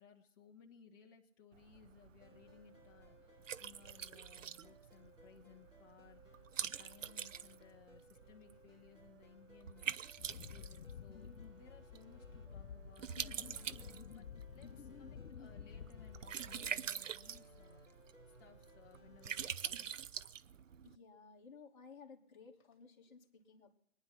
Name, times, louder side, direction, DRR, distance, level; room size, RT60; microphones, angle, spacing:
voice 1, 0.0-10.2 10.5-18.0 18.4-19.9, left 7 dB, 15° left, 1.0 m, -62 dB
Liquid, 1.5-21.0, right 8 dB, 65° right, 0.7 m, -46 dB
sound 1, 2.2-19.5, equal, 10° right, 3.7 m, -63 dB
Wind, 10.2-17.0 17.3-17.8, left 7 dB, 65° left, 0.8 m, -52 dB
voice 2, 20.8-23.8, left 5 dB, 35° left, 2.4 m, -57 dB
23.0 x 9.9 x 5.8 m
hypercardioid pair, 150°, 41 cm